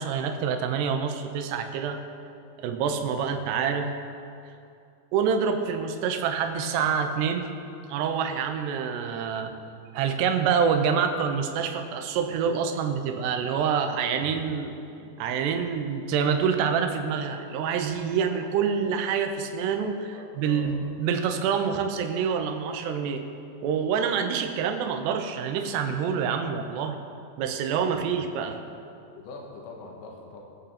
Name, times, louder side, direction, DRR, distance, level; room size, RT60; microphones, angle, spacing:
voice 1, 0.0-2.0 2.6-3.9 5.1-7.5 7.9-9.5 9.9-14.7 15.0-23.2 23.6-27.0 27.4-28.6, right 6 dB, 80° right, 5 dB, 2.9 m, -26 dB
voice 2, 20.1-20.8 27.9-28.1 29.2-30.4, left 3 dB, 90° left, -1 dB, 3.7 m, -44 dB
22.0 x 8.1 x 4.3 m, 2.6 s
omnidirectional pair, 5.0 m